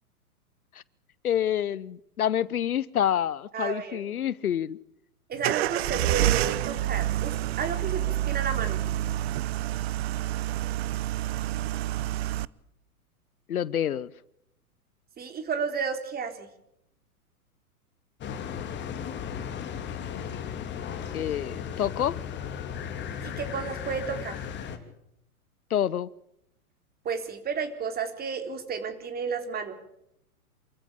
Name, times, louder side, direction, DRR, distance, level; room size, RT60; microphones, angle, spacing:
voice 1, 1.2-4.8 13.5-14.1 21.1-22.2 25.7-26.1, left 10 dB, 75° left, 21 dB, 1.0 m, -27 dB
voice 2, 3.5-4.0 5.3-8.8 15.2-16.5 23.2-24.4 27.0-29.8, right 6 dB, 20° right, 7 dB, 3.8 m, -32 dB
sound 1, 5.4-12.4, right 14 dB, 45° right, 0.8 m, -28 dB
sound 2, 18.2-24.8, left 8 dB, 25° left, 3.0 m, -36 dB
28.5 x 14.5 x 8.6 m, 0.79 s
hypercardioid pair, 115°, 44 cm